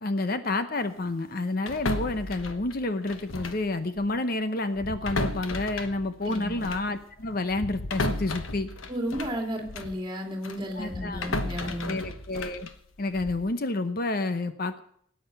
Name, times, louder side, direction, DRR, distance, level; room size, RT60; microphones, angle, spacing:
voice 1, 0.0-8.7 10.7-11.3 11.5-12.7 13.0-14.8, left 2 dB, 45° left, 10 dB, 0.8 m, -29 dB
sound 1, 1.7-3.7 4.0-4.2 4.7-10.0 10.4-13.5, left 2 dB, 90° left, 1.1 m, -34 dB
voice 2, 6.2-6.6 8.9-12.0, equal, 25° right, 2 dB, 2.6 m, -33 dB
17.5 x 9.0 x 6.8 m, 0.67 s
head